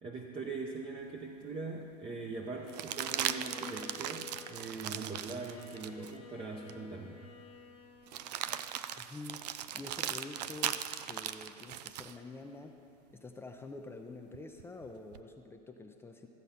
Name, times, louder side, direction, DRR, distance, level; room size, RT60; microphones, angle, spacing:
voice 1, 0.0-7.2, right 3 dB, 25° right, 0 dB, 0.9 m, -41 dB
sound 1, 1.1-1.2 2.7-6.1 6.7-6.8 8.1-12.2 14.3-15.2, right 11 dB, 75° right, 0.5 m, -38 dB
Bowed string instrument, 2.5-8.8, left 7 dB, 25° left, 1.2 m, -53 dB
voice 2, 9.0-9.5 9.7-12.7 13.1-16.3, left 3 dB, 10° left, 3 dB, 0.6 m, -47 dB
14.0 x 8.1 x 5.7 m, 2.6 s
hypercardioid pair, 115°, 21 cm